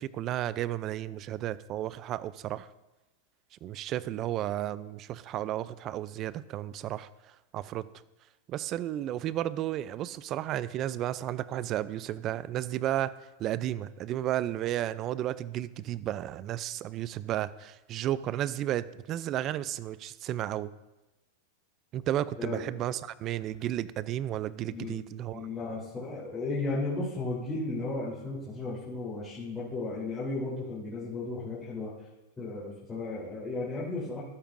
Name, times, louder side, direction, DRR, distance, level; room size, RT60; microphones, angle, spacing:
voice 1, 0.0-2.7 3.6-7.9 8.5-13.1 13.4-20.7 21.9-25.5, right 12 dB, 35° right, 17 dB, 0.4 m, -33 dB
voice 2, 25.3-31.9 32.4-34.2, left 3 dB, 15° left, -10 dB, 3.4 m, -34 dB
14.0 x 12.0 x 2.6 m, 1.0 s
supercardioid pair, 135°, 0 cm